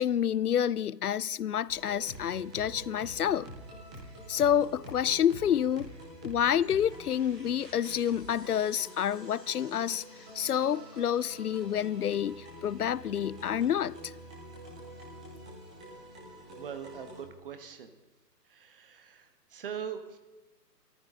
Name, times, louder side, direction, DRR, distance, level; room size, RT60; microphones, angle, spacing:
voice 1, 0.0-3.5 4.3-5.9 6.2-10.0 10.3-14.1, left 9 dB, 65° left, 0.6 m, -28 dB
sound 1, 1.7-17.2, equal, 5° right, 0.6 m, -47 dB
voice 2, 16.5-17.9 18.5-20.2, right 8 dB, 35° right, 1.4 m, -42 dB
27.5 x 14.0 x 3.8 m
hypercardioid pair, 155°, 50 cm